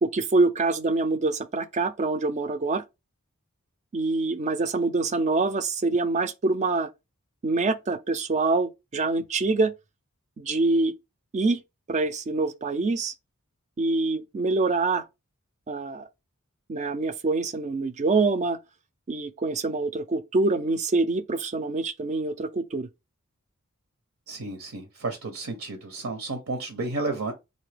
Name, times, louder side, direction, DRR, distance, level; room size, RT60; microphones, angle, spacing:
voice 1, 0.0-2.8 3.9-6.9 7.4-9.7 10.4-10.9 11.3-11.6 11.9-13.1 13.8-15.1 15.7-16.1 16.7-18.6 19.1-22.9, right 3 dB, 35° right, 0.4 m, -25 dB
voice 2, 24.3-27.3, right 3 dB, 70° right, 0.7 m, -32 dB
3.8 x 2.6 x 3.3 m
head